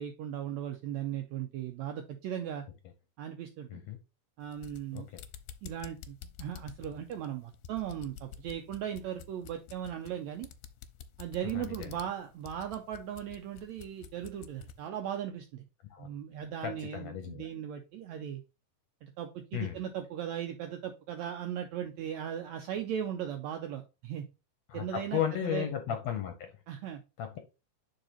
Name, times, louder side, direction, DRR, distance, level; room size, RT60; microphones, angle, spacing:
voice 1, 0.0-2.6 3.2-3.8 4.4-5.1 5.6-10.5 11.2-15.6 16.0-18.4 19.0-24.2 24.7-25.7 26.7-27.0, right 10 dB, 85° right, 1.6 m, -38 dB
sound 1, 4.4-14.8, left 9 dB, 90° left, 2.3 m, -49 dB
voice 2, 11.5-12.0 15.9-16.1 16.6-17.5 19.5-19.8 24.7-26.6 27.2-27.4, left 10 dB, 75° left, 1.6 m, -35 dB
5.2 x 4.8 x 4.3 m
omnidirectional pair, 3.8 m